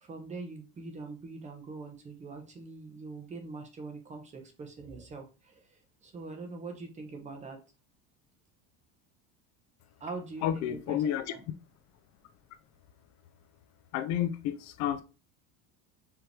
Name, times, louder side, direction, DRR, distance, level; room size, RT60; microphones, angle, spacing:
voice 1, 0.0-7.6 10.0-11.4, right 3 dB, 20° right, 4 dB, 0.9 m, -43 dB
voice 2, 10.4-11.3 13.9-15.0, left 10 dB, 55° left, 11 dB, 0.5 m, -30 dB
4.7 x 3.0 x 3.3 m, 0.31 s
cardioid pair, 140°, 32 cm